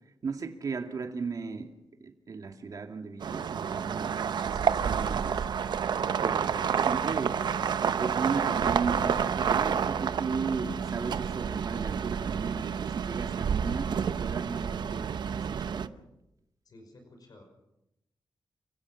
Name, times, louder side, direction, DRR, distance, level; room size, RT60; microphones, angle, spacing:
voice 1, 0.2-1.7 2.0-5.4 6.2-7.4 7.8-15.9, right 4 dB, 50° right, 2.3 m, -36 dB
sound 1, 3.2-15.9, right 7 dB, 75° right, 0.8 m, -29 dB
voice 2, 16.6-17.4, left 1 dB, 60° left, 5.6 m, -53 dB
29.0 x 16.5 x 5.8 m
wide cardioid pair, 110°, 8 cm